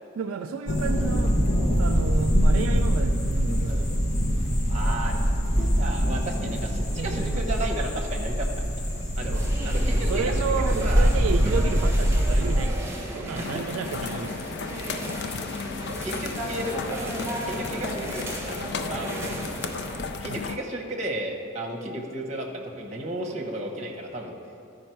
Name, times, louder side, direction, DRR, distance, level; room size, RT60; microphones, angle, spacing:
voice 1, 0.2-1.4 1.8-3.9 7.0-7.4 9.3-9.4 10.0-12.8 13.1-14.4 20.3-20.4, right 5 dB, 70° right, 6 dB, 0.3 m, -31 dB
sound 1, 0.7-12.7, equal, 30° left, 0.9 m, -23 dB
voice 2, 4.7-8.6 9.2-11.1 11.4-11.5 13.0-13.6 15.8-19.4 20.2-24.4, right 1 dB, 30° right, 0 dB, 1.0 m, -34 dB
sound 2, 9.3-20.0, right 1 dB, 15° right, 1.4 m, -36 dB
sound 3, 13.3-20.6, left 4 dB, 50° left, 0.4 m, -34 dB
12.5 x 5.2 x 4.6 m, 2.5 s
head